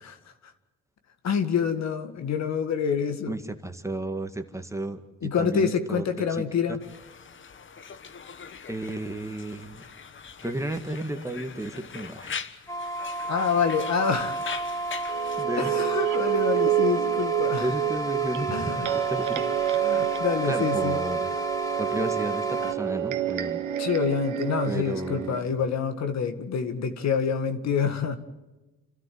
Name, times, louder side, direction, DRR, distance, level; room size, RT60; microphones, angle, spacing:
voice 1, 1.2-3.3 5.2-6.8 13.3-14.4 15.6-17.7 18.5-18.9 19.8-21.0 23.8-28.2, left 6 dB, 60° left, 8 dB, 2.0 m, -27 dB
voice 2, 3.3-6.8 8.7-9.8 10.4-12.4 15.4-15.8 17.6-19.4 20.4-21.3 21.8-23.6 24.6-25.4, right 1 dB, 10° right, 6 dB, 1.9 m, -33 dB
Conversation, 6.8-15.4, left 6 dB, 40° left, 1.3 m, -41 dB
sound 1, 12.7-22.7, right 2 dB, 10° left, 2.7 m, -32 dB
sound 2, 15.1-25.4, right 12 dB, 80° right, 1.4 m, -28 dB
29.0 x 13.0 x 7.7 m, 1.1 s
cardioid pair, 90°, 30 cm